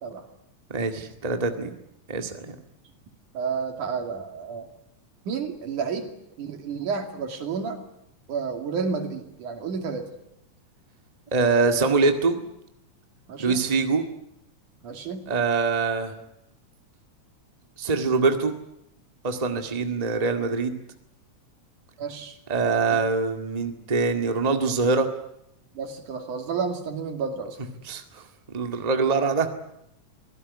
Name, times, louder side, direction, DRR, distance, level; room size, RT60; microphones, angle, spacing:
voice 1, 0.7-1.7 2.1-2.5 11.3-12.4 13.4-14.1 15.3-16.1 17.8-18.6 19.2-20.8 22.5-25.1 27.8-28.2 28.5-29.5, right 4 dB, 15° right, 6 dB, 1.6 m, -24 dB
voice 2, 3.3-4.7 5.3-6.1 6.4-7.8 8.3-10.1 13.3-13.6 14.8-15.3 22.0-22.4 22.9-23.0 25.8-27.6, right 5 dB, 85° right, 6 dB, 4.1 m, -31 dB
25.0 x 16.5 x 9.8 m, 0.80 s
omnidirectional pair, 3.5 m